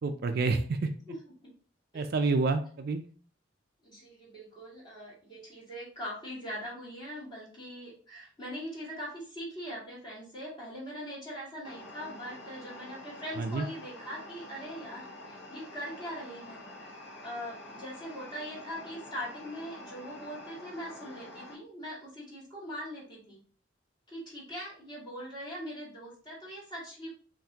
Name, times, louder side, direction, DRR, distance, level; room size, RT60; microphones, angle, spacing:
voice 1, 0.0-0.9 1.9-3.0 13.4-13.7, right 3 dB, 50° right, 7 dB, 0.4 m, -28 dB
voice 2, 3.8-23.4 24.1-27.1, equal, 25° left, -6 dB, 2.0 m, -41 dB
sound 1, 11.6-21.5, left 1 dB, 70° left, 0.9 m, -47 dB
5.7 x 2.6 x 2.8 m, 0.42 s
head